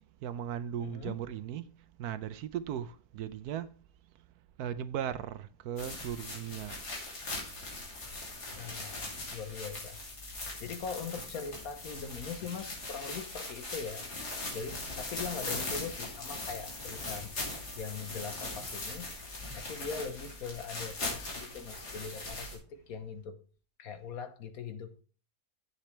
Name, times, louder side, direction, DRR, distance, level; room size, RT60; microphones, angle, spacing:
voice 1, 0.2-3.8 4.6-6.8, right 10 dB, 75° right, 1.1 m, -37 dB
voice 2, 0.8-1.2 8.6-10.0 10.6-14.1 14.5-19.1 19.5-23.4 23.8-25.0, left 6 dB, 65° left, 1.4 m, -41 dB
sound 1, 5.8-22.6, left 2 dB, 80° left, 3.4 m, -40 dB
10.0 x 8.0 x 3.3 m
omnidirectional pair, 1.7 m